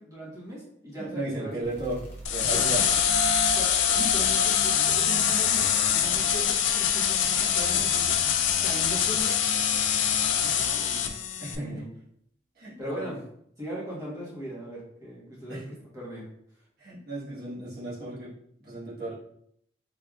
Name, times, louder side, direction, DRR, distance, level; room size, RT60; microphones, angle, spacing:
voice 1, 0.0-1.5 2.5-2.8 3.3-8.2 8.6-9.4 10.3-11.1 11.5-11.9 12.8-13.2 13.6-16.3, equal, 15° right, -6 dB, 1.2 m, -39 dB
voice 2, 1.0-2.8 11.4-11.9 12.5-13.1 15.5-15.6 16.8-19.1, right 2 dB, 55° right, -8 dB, 1.3 m, -35 dB
sound 1, 1.6-8.9, right 2 dB, 10° left, 0.7 m, -48 dB
sound 2, 2.2-11.5, left 8 dB, 80° left, 0.4 m, -24 dB
3.4 x 3.3 x 2.4 m, 0.71 s
head